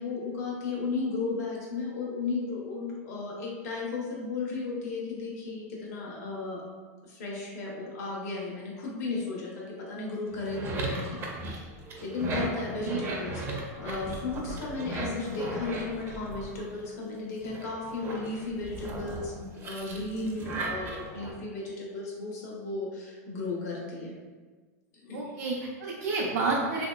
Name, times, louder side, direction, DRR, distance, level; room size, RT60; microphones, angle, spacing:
voice 1, 0.0-6.6 7.0-11.7 12.0-24.1 24.9-25.3, left 3 dB, 75° left, -3 dB, 0.9 m, -35 dB
sound 1, 10.3-17.0 17.4-21.3, right 1 dB, 25° right, 0.5 m, -36 dB
voice 2, 12.5-13.0 25.1-26.8, right 3 dB, 75° right, -4 dB, 0.5 m, -30 dB
3.0 x 2.7 x 2.2 m, 1.4 s
supercardioid pair, 130°, 9 cm